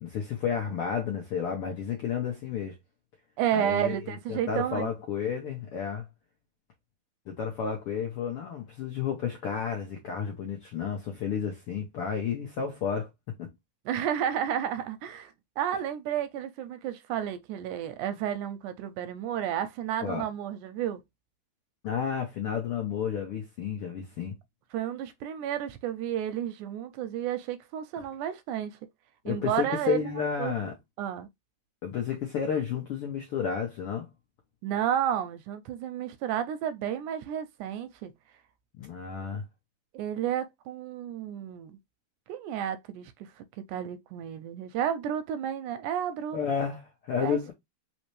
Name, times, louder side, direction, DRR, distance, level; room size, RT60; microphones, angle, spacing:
voice 1, 0.0-2.8 3.5-6.1 7.3-13.1 13.4-13.5 20.0-20.2 21.8-24.3 29.2-30.7 31.8-34.1 38.8-39.4 46.3-47.5, left 7 dB, 75° left, 1.3 m, -31 dB
voice 2, 3.4-4.9 13.9-21.0 24.7-28.8 29.3-30.5 31.0-31.3 34.6-38.1 39.9-41.7 42.3-43.4 43.7-46.4 47.2-47.5, right 10 dB, 80° right, 1.9 m, -31 dB
4.4 x 3.8 x 3.1 m
omnidirectional pair, 3.8 m